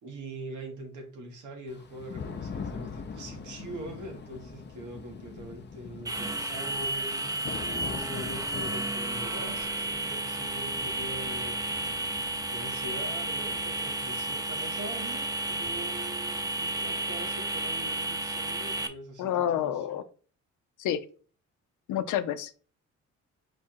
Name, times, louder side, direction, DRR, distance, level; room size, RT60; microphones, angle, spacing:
voice 1, 0.0-20.0, right 1 dB, 80° right, 1.5 m, -43 dB
Thunder / Rain, 1.7-17.4, left 5 dB, 35° left, 0.7 m, -44 dB
sound 1, 6.0-18.9, right 2 dB, 10° right, 0.6 m, -32 dB
voice 2, 19.2-20.0 20.8-21.0 21.9-22.5, left 10 dB, 80° left, 0.6 m, -28 dB
4.9 x 2.4 x 4.4 m
cardioid pair, 90°, 30 cm